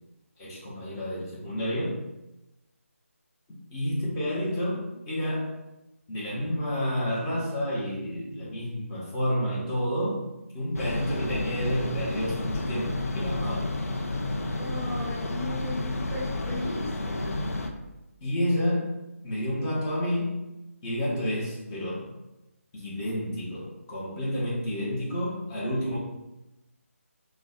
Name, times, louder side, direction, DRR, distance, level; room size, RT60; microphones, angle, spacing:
voice 1, 0.4-2.0 3.7-5.5 6.1-10.2 10.5-13.7 18.2-18.9 19.2-20.3 20.8-22.1 22.7-26.0, equal, 15° left, -7 dB, 0.7 m, -30 dB
sound 1, 10.7-17.7, left 2 dB, 80° left, 0.4 m, -31 dB
voice 2, 14.6-17.4, left 1 dB, 20° right, -9 dB, 0.7 m, -36 dB
2.4 x 2.1 x 3.8 m, 0.98 s
figure-of-eight pair, 165°, 8 cm